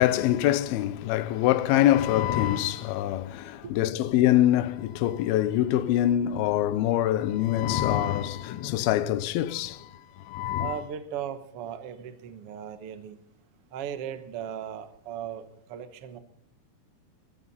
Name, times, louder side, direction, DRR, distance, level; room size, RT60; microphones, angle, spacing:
voice 1, 0.0-10.8, left 13 dB, 85° left, 2.7 m, -24 dB
voice 2, 10.6-13.2 13.7-15.4 15.7-16.2, right 9 dB, 65° right, 1.5 m, -37 dB
21.5 x 13.5 x 4.2 m
omnidirectional pair, 4.3 m